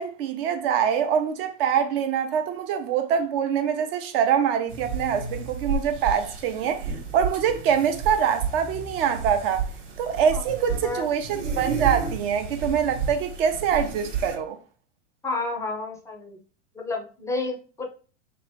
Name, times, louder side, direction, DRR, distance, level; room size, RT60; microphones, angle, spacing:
voice 1, 0.0-9.6 10.0-14.6, right 8 dB, 50° right, 0.7 m, -24 dB
sound 1, 4.7-14.4, right 5 dB, 70° right, 1.1 m, -32 dB
voice 2, 10.3-11.1 15.2-16.4 16.7-17.9, left 3 dB, 10° left, 0.5 m, -31 dB
3.0 x 2.5 x 3.1 m
hypercardioid pair, 100°, 38 cm